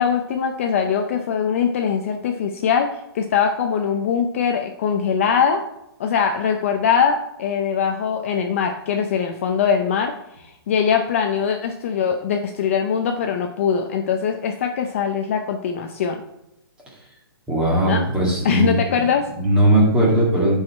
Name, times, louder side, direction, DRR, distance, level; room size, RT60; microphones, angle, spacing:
voice 1, 0.0-5.6 6.0-10.1 10.4-16.2 17.9-18.0 18.4-19.3, left 7 dB, 30° left, 4 dB, 0.5 m, -22 dB
voice 2, 17.5-19.1 19.4-20.6, right 1 dB, 5° right, -5 dB, 1.8 m, -18 dB
10.5 x 4.9 x 4.2 m, 0.85 s
hypercardioid pair, 170°, 13 cm